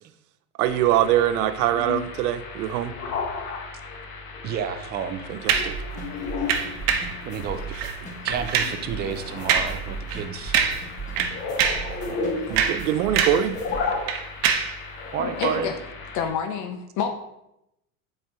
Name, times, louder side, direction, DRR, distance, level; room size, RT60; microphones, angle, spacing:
sound 1, 0.6-16.3, left 4 dB, 70° left, 1.5 m, -34 dB
voice 1, 0.6-2.9 5.3-5.7 12.5-13.5, right 11 dB, 85° right, 12 dB, 0.6 m, -23 dB
voice 2, 4.4-5.3 7.2-7.9 8.2-10.6 12.0-12.2 15.1-15.7, right 7 dB, 25° right, 8 dB, 0.4 m, -30 dB
sound 2, 5.5-13.8, right 5 dB, 15° left, 1.7 m, -38 dB
sound 3, 5.5-5.8 6.5-7.2 7.7-8.0 8.3-8.8 9.5-9.8 10.1-10.2 10.5-10.9 11.2-11.9 12.4-13.5 13.8-14.8 15.4-15.6, right 7 dB, 55° right, 0.9 m, -24 dB
voice 3, 15.4-15.7 16.1-17.1, left 7 dB, 40° left, 5 dB, 0.6 m, -27 dB
7.4 x 4.4 x 3.5 m, 0.86 s
supercardioid pair, 135°, 45 cm